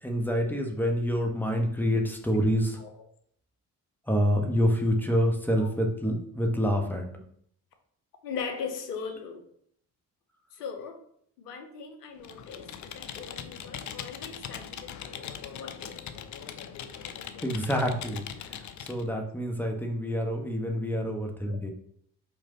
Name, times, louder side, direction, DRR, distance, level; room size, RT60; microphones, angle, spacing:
voice 1, 0.0-2.8 4.1-7.2 17.4-21.7, equal, 5° left, 2 dB, 1.4 m, -27 dB
voice 2, 8.2-9.4 10.5-11.0 11.4-16.0 21.5-21.6, left 5 dB, 80° left, 5 dB, 0.8 m, -39 dB
Computer keyboard, 12.2-19.0, left 8 dB, 40° left, 0.7 m, -41 dB
5.3 x 4.5 x 4.0 m, 0.66 s
figure-of-eight pair, 45°, 47 cm